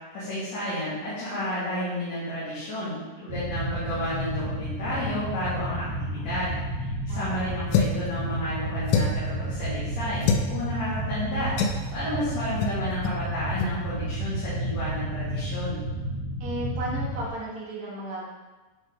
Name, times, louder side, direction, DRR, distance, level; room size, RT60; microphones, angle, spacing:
voice 1, 0.1-15.8, left 1 dB, 55° left, -12 dB, 2.8 m, -32 dB
sound 1, 3.3-17.3, right 1 dB, 70° right, 1.8 m, -31 dB
voice 2, 7.1-7.4 16.4-18.3, right 1 dB, 85° right, -6 dB, 0.8 m, -34 dB
sound 2, 7.7-8.1 8.9-9.3 10.2-10.5 11.6-11.8 12.6-12.8 13.0-13.2 13.6-13.7, left 5 dB, 80° left, 2.0 m, -24 dB
9.1 x 3.7 x 3.7 m, 1.2 s
omnidirectional pair, 3.8 m